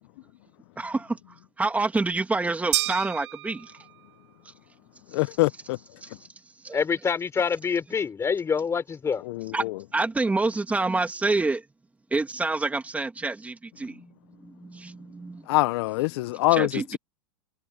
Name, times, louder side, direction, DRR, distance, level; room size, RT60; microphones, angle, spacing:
voice 1, 0.8-1.2 1.6-3.7 6.0-6.1 6.6-6.8 9.5-9.7 9.9-11.6 12.1-14.0 14.4-15.5 16.5-17.0, right 3 dB, 10° right, 2.5 m, -27 dB
sound 1, 2.7-4.2, right 18 dB, 65° right, 2.8 m, -30 dB
voice 2, 5.1-5.8 9.3-9.7 15.5-17.0, left 21 dB, 60° left, 0.7 m, -24 dB
voice 3, 6.7-9.2, left 6 dB, 20° left, 3.9 m, -26 dB
hypercardioid pair, 120°, 15 cm